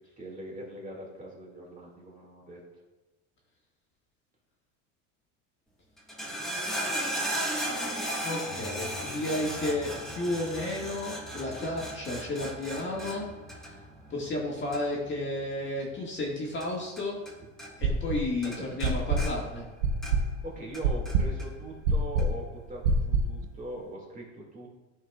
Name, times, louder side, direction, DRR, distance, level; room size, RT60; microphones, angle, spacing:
voice 1, 0.2-2.6 18.5-18.8 20.4-24.8, right 1 dB, 20° right, -2 dB, 2.1 m, -41 dB
sound 1, 6.0-17.3 17.6-18.2 18.4-20.4 20.7-21.5 22.2-22.3, right 1 dB, ahead, 1.4 m, -36 dB
voice 2, 8.2-13.2 14.1-17.2 17.8-19.6, left 1 dB, 30° left, -3 dB, 1.8 m, -32 dB
sound 2, 17.8-18.4 18.8-23.4, right 2 dB, 85° right, 0.8 m, -26 dB
13.0 x 4.6 x 2.3 m, 1.1 s
supercardioid pair, 115°, 38 cm